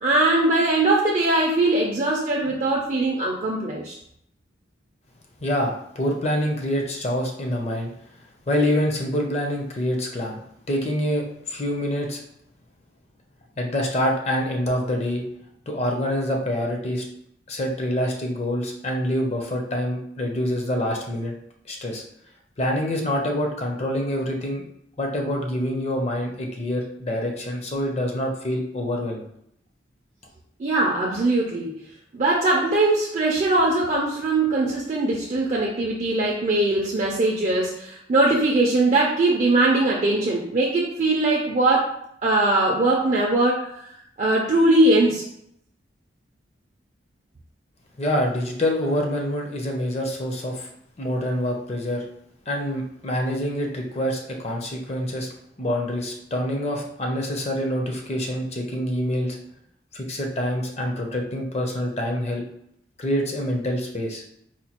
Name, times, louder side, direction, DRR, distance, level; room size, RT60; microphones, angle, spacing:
voice 1, 0.0-3.9 30.6-31.7 32.1-41.9 42.2-43.7 44.2-45.3, right 2 dB, 40° right, -2 dB, 0.4 m, -21 dB
voice 2, 5.4-7.9 8.5-10.4 10.7-12.2 13.6-15.2 15.7-17.0 17.5-21.3 21.7-22.0 22.6-24.6 25.0-29.3 48.0-50.7 51.0-52.0 52.5-55.3 55.6-59.4 59.9-62.4 63.0-64.2, equal, 35° left, 1 dB, 0.5 m, -26 dB
4.2 x 2.2 x 2.8 m, 0.73 s
head